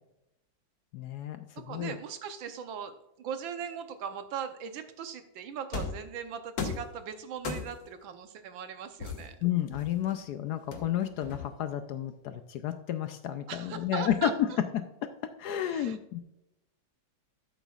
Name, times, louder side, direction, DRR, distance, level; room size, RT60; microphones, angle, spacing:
voice 1, 0.9-2.0 9.4-15.1 15.4-16.2, left 10 dB, 70° left, 9 dB, 1.0 m, -31 dB
voice 2, 1.7-9.4 13.5-14.6 15.7-16.0, right 8 dB, 90° right, 9 dB, 1.6 m, -39 dB
sound 1, 5.7-6.1 6.6-6.9 7.4-7.9 9.0-10.1 10.7-11.7, left 4 dB, 55° left, 1.6 m, -36 dB
13.0 x 7.1 x 2.4 m, 0.88 s
omnidirectional pair, 2.1 m